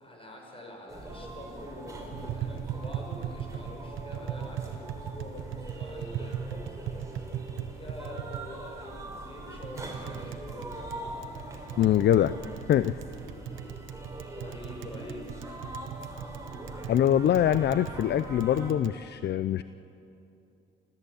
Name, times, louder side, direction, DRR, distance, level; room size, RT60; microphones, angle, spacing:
voice 1, 0.0-6.8 7.8-11.5 14.3-15.3, left 1 dB, 30° left, 1 dB, 6.2 m, -45 dB
sound 1, 0.9-18.7, right 1 dB, 15° right, 4.9 m, -42 dB
Tap, 2.1-18.9, right 9 dB, 85° right, 1.1 m, -39 dB
voice 2, 11.8-12.3 12.7-12.9 16.9-19.6, left 11 dB, 55° left, 14 dB, 0.5 m, -23 dB
25.5 x 15.5 x 8.6 m, 2.8 s
cardioid pair, 90°, 20 cm